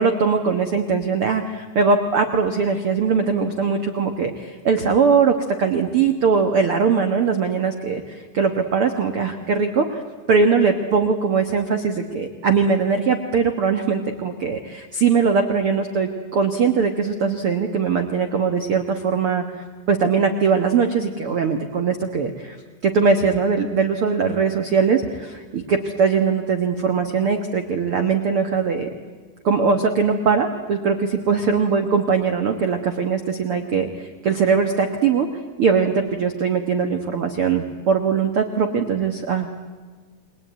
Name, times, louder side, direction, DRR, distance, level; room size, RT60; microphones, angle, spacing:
voice 1, 0.0-10.0 10.3-19.4 19.9-22.6 22.8-28.9 29.4-33.9 34.2-35.3 35.6-39.5, right 5 dB, 65° right, 6 dB, 1.4 m, -21 dB
29.0 x 21.5 x 9.4 m, 1.5 s
omnidirectional pair, 4.6 m